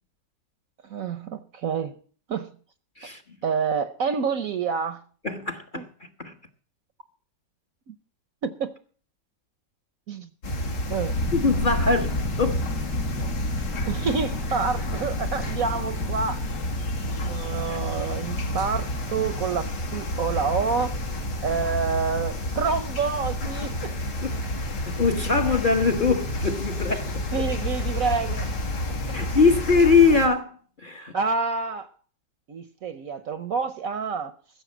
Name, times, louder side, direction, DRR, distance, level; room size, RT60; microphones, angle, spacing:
voice 1, 0.9-2.0 2.3-2.5 3.4-5.0 5.7-5.8 7.9-8.0 8.4-8.7 10.1-10.3 10.9-11.2 13.8-16.4 17.2-21.0 21.4-23.9 27.3-28.5 31.1-31.9 32.5-34.3, right 5 dB, 60° right, 1.0 m, -28 dB
voice 2, 5.2-5.8 6.2-6.3 11.3-12.6 17.7-17.8 24.2-24.3 24.9-27.4 29.1-30.5 30.8-31.1, left 4 dB, 35° left, 1.0 m, -22 dB
sound 1, 10.4-30.3, left 1 dB, 70° left, 2.8 m, -30 dB
sound 2, 11.1-25.6 25.9-26.0, left 2 dB, 50° left, 1.4 m, -35 dB
15.0 x 7.0 x 7.2 m
omnidirectional pair, 2.0 m